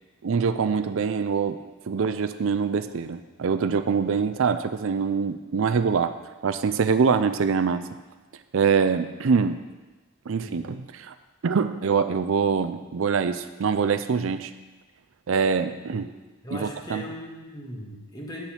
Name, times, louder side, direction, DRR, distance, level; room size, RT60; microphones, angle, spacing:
voice 1, 0.2-1.6 1.9-6.1 6.4-7.8 8.5-9.6 10.3-11.1 11.4-14.5 15.3-16.0 16.5-17.1, right 5 dB, 70° right, 11 dB, 0.4 m, -24 dB
voice 2, 16.4-18.4, left 1 dB, 20° left, -1 dB, 1.4 m, -38 dB
8.6 x 6.8 x 5.8 m, 1.2 s
head